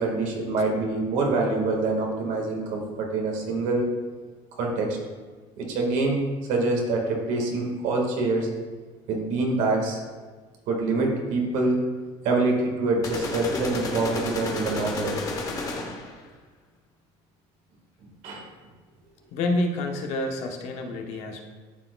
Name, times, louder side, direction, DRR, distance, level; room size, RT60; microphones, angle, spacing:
voice 1, 0.0-3.9 4.6-5.0 5.6-6.2 6.5-8.5 9.1-10.0 10.7-11.8 12.2-15.2 18.2-18.5, right 3 dB, 65° right, 1 dB, 1.6 m, -25 dB
sound 1, 13.0-16.2, left 3 dB, 25° left, 0.8 m, -32 dB
voice 2, 19.3-21.4, left 2 dB, 55° left, 3 dB, 0.8 m, -28 dB
12.0 x 4.7 x 2.2 m, 1.4 s
cardioid pair, 175°, 14 cm